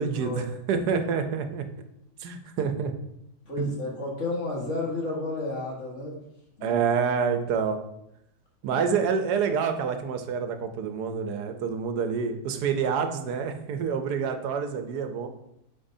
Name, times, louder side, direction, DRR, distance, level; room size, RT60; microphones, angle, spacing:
voice 1, 0.0-1.6 2.2-2.9 3.6-3.8 6.6-7.8 8.6-15.3, right 6 dB, 85° right, 7 dB, 1.3 m, -27 dB
voice 2, 3.5-6.2 6.6-6.7 8.7-8.9, left 2 dB, 50° left, -3 dB, 1.9 m, -32 dB
8.9 x 4.4 x 2.7 m, 0.80 s
omnidirectional pair, 1.7 m